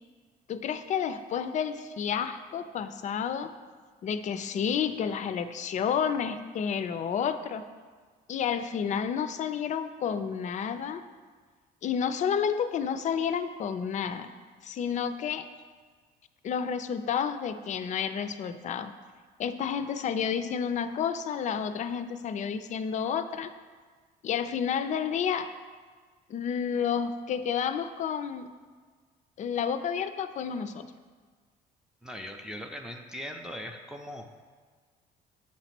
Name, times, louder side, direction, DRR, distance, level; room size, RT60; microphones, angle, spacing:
voice 1, 0.5-3.5 4.0-7.7 8.3-11.0 11.8-14.3 14.6-15.5 16.4-18.9 19.4-23.5 24.2-25.5 26.3-28.5 29.4-30.9, left 7 dB, 45° left, 11 dB, 0.4 m, -30 dB
voice 2, 32.0-34.3, equal, 5° right, 2 dB, 0.5 m, -40 dB
8.4 x 3.0 x 5.9 m, 1.5 s
cardioid pair, 110°, 17 cm